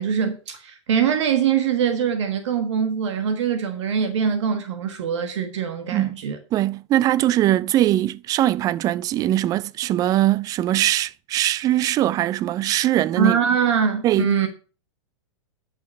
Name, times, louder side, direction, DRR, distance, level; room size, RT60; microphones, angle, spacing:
voice 1, 0.0-6.4 13.2-14.5, right 7 dB, 70° right, 1.4 m, -23 dB
voice 2, 6.5-13.4 14.0-14.3, right 13 dB, 25° right, 0.4 m, -21 dB
10.5 x 5.8 x 5.3 m
hypercardioid pair, 130°, 16 cm